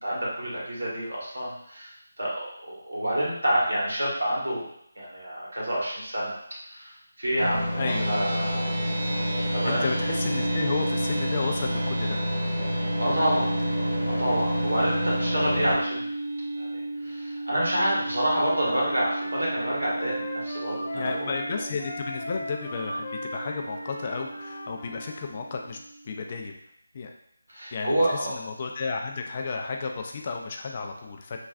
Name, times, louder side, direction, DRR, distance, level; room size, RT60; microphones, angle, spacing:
voice 1, 0.0-4.6 4.9-6.4 6.7-8.9 9.5-9.8 13.0-13.5 14.2-16.0 16.6-21.3 21.6-21.7 27.5-28.3, equal, 80° right, -5 dB, 1.4 m, -28 dB
sound 1, 7.4-15.8, equal, 10° right, 1.0 m, -28 dB
voice 2, 7.8-8.4 9.7-12.2 20.9-25.8 26.1-26.6 26.9-27.1 27.7-31.4, left 4 dB, 35° left, 3 dB, 0.3 m, -33 dB
sound 2, 7.9-26.4, right 2 dB, 35° right, 0.5 m, -35 dB
Wind instrument woodwind instrument, 18.2-25.3, left 1 dB, 15° left, 0.9 m, -39 dB
3.3 x 2.3 x 2.4 m, 0.73 s
figure-of-eight pair, 160°, 0 cm